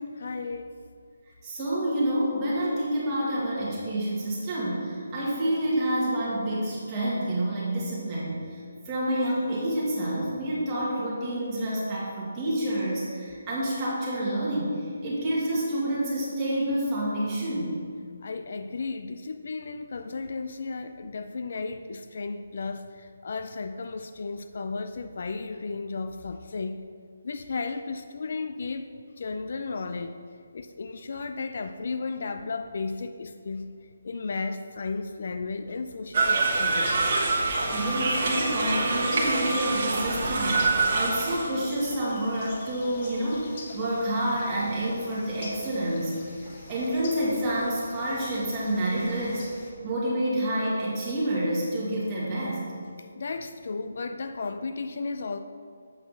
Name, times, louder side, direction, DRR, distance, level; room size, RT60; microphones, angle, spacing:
voice 1, 0.2-0.8 18.2-26.8 27.2-28.9 29.2-30.1 30.5-33.7 34.0-36.9 53.2-55.4, left 4 dB, 55° left, 9 dB, 0.3 m, -34 dB
voice 2, 1.4-8.6 8.8-14.7 15.0-17.8 37.7-43.5 43.7-46.2 46.7-49.4 49.8-52.6, right 1 dB, 15° right, -8 dB, 1.9 m, -28 dB
sound 1, 36.1-41.5, right 3 dB, 40° right, 1.3 m, -25 dB
sound 2, 36.5-49.7, left 2 dB, 35° left, 1.1 m, -45 dB
8.0 x 4.1 x 5.6 m, 2.2 s
hypercardioid pair, 170°, 0 cm